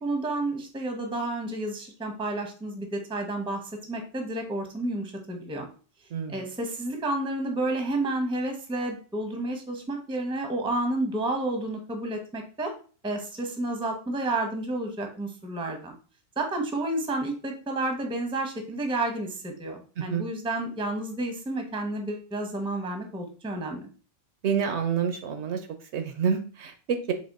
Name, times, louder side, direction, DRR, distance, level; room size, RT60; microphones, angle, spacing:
voice 1, 0.0-5.7 6.3-12.7 13.0-16.0 16.4-23.9, right 2 dB, 5° right, 4 dB, 0.6 m, -30 dB
voice 2, 6.1-6.4 20.0-20.2 24.4-25.6 25.9-27.1, right 7 dB, 70° right, 7 dB, 0.9 m, -28 dB
4.1 x 2.8 x 4.0 m, 0.38 s
omnidirectional pair, 1.3 m